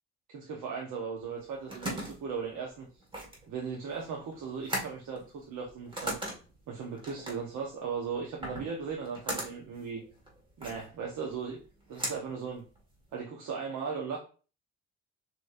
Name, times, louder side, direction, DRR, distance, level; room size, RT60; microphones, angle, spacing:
voice 1, 0.3-2.9 3.5-6.2 6.7-10.0 10.6-11.6 11.9-12.7 13.1-14.2, right 5 dB, 75° right, -1 dB, 1.0 m, -37 dB
sound 1, 1.3-13.2, right 1 dB, 15° right, 1.8 m, -40 dB
6.3 x 3.2 x 2.5 m, 0.36 s
cardioid pair, 90°, 30 cm